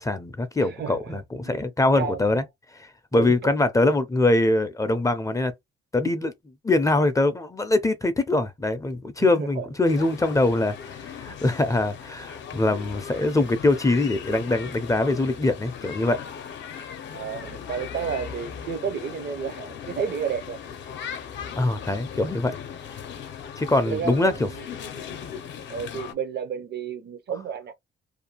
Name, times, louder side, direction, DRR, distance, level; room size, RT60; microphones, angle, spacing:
voice 1, 0.0-2.4 2.7-5.5 5.9-6.3 6.6-16.2 21.6-22.5 23.6-24.5, left 2 dB, 15° left, 0.4 m, -23 dB
voice 2, 0.6-1.1 1.4-1.6 1.9-2.2 3.1-3.3 9.2-9.7 10.0-10.1 17.1-20.6 23.8-24.4 25.7-27.7, right 7 dB, 55° right, 0.5 m, -31 dB
sound 1, 9.9-26.1, left 7 dB, 65° left, 0.6 m, -38 dB
2.5 x 2.2 x 2.8 m
cardioid pair, 90°, 20 cm